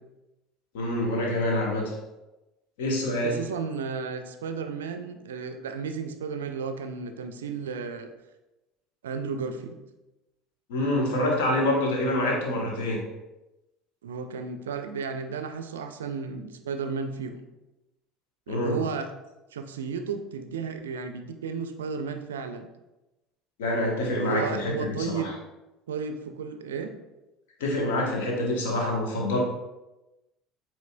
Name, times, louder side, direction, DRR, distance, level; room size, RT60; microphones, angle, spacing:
voice 1, 0.7-1.9 2.8-3.4 10.7-13.0 18.5-18.8 23.6-25.3 27.6-29.4, left 1 dB, 65° left, -1 dB, 1.0 m, -26 dB
voice 2, 3.2-8.1 9.0-9.8 14.0-17.4 18.5-19.1 19.5-22.7 24.0-25.4 25.9-26.9, right 5 dB, 70° right, 8 dB, 0.4 m, -33 dB
7.7 x 3.1 x 2.2 m, 1.0 s
figure-of-eight pair, 65°, 0 cm